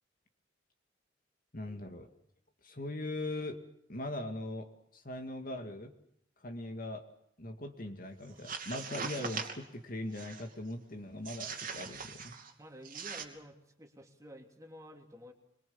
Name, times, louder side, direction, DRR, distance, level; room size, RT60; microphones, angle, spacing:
voice 1, 1.5-2.1 2.6-3.6 3.9-5.9 6.4-7.0 7.4-12.4, left 1 dB, 45° left, 5 dB, 2.2 m, -40 dB
sound 1, 8.3-9.7 10.1-10.5 11.3-12.5 12.8-13.2, right 5 dB, 45° right, 2.7 m, -41 dB
voice 2, 12.6-15.3, equal, 15° right, 3 dB, 3.0 m, -51 dB
25.0 x 23.5 x 7.2 m, 0.75 s
head